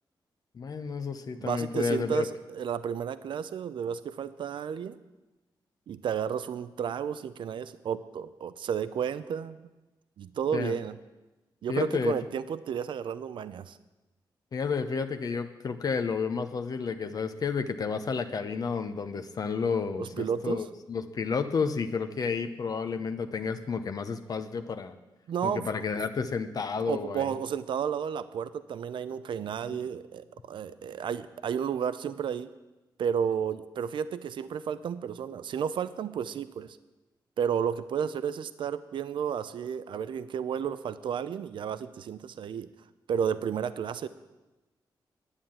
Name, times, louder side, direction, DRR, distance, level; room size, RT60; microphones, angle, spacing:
voice 1, 0.5-2.3 10.5-10.7 11.7-12.1 14.5-24.9 25.4-27.3, left 5 dB, 50° left, 8 dB, 0.8 m, -31 dB
voice 2, 1.3-5.0 5.9-9.6 10.2-11.0 11.6-13.8 20.0-20.6 25.3-25.6 26.9-32.5 33.0-36.8 37.4-42.7 43.1-44.1, right 7 dB, 75° right, 14 dB, 0.6 m, -32 dB
11.5 x 9.4 x 8.8 m, 1.1 s
wide cardioid pair, 135°, 8 cm